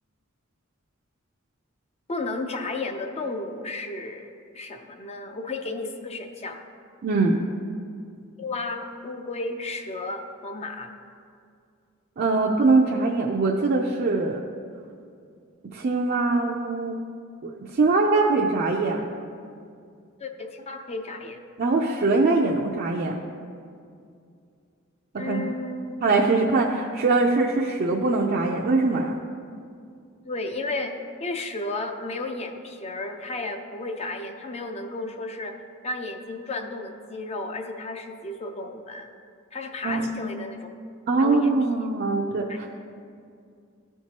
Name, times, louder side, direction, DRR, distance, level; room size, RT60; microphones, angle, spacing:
voice 1, 2.1-6.6 8.4-10.9 20.2-21.4 25.2-26.0 30.2-35.6 35.8-39.1 39.5-40.7 41.2-41.5 42.5-42.6, left 2 dB, 30° left, 5 dB, 0.5 m, -33 dB
voice 2, 7.0-7.4 12.2-14.4 15.7-17.0 17.4-19.1 21.6-23.2 25.2-25.5 26.0-29.2 39.8-40.2 41.1-42.8, right 3 dB, 50° right, -1 dB, 0.5 m, -22 dB
13.5 x 4.6 x 2.9 m, 2.3 s
head